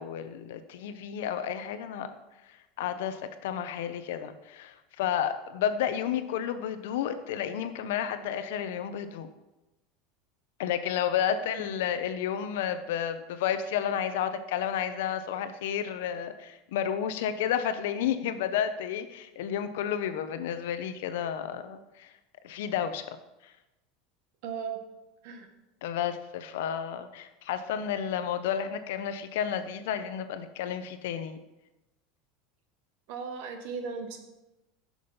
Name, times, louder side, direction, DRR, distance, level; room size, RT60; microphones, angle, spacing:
voice 1, 0.0-2.1 2.8-9.3 10.6-22.1 22.4-23.0 23.4-23.5 25.8-31.4, left 9 dB, 75° left, 10 dB, 0.9 m, -31 dB
voice 2, 11.3-11.6 24.4-24.8 25.2-25.5 33.1-34.2, right 6 dB, 50° right, 6 dB, 1.5 m, -37 dB
10.5 x 6.4 x 5.6 m, 0.97 s
supercardioid pair, 180°, 0 cm